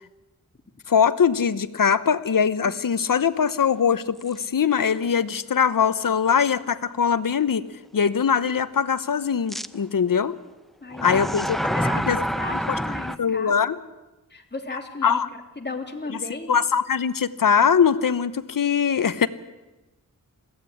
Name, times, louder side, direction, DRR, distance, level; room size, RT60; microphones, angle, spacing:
voice 1, 0.9-7.7 7.9-10.4 11.0-11.6 12.1-12.2 13.2-13.8 15.0-15.3 16.1-16.2 16.5-19.3, left 7 dB, 75° left, 14 dB, 1.0 m, -21 dB
sound 1, 4.2-4.3 5.0-5.1 9.5-9.7 10.9-13.2, equal, ahead, 0.7 m, -27 dB
voice 2, 10.8-13.7 14.3-15.2 15.6-16.5, left 3 dB, 30° left, 3 dB, 3.1 m, -35 dB
22.0 x 16.0 x 9.9 m, 1.1 s
wide cardioid pair, 85°, 33 cm